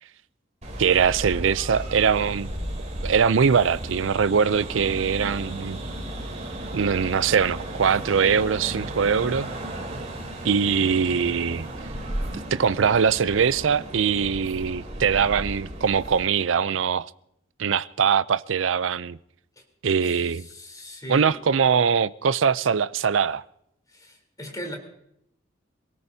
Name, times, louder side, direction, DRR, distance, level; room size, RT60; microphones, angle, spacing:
sound 1, 0.6-16.3, right 1 dB, 40° right, 3.1 m, -34 dB
voice 1, 0.8-2.5 3.0-5.8 6.7-9.5 10.4-11.6 12.5-17.1 17.6-19.2 19.8-20.5 21.1-23.4, right 6 dB, 85° right, 0.5 m, -22 dB
voice 2, 20.0-21.4 23.9-24.8, equal, 20° left, 3.7 m, -39 dB
26.0 x 17.5 x 2.8 m
head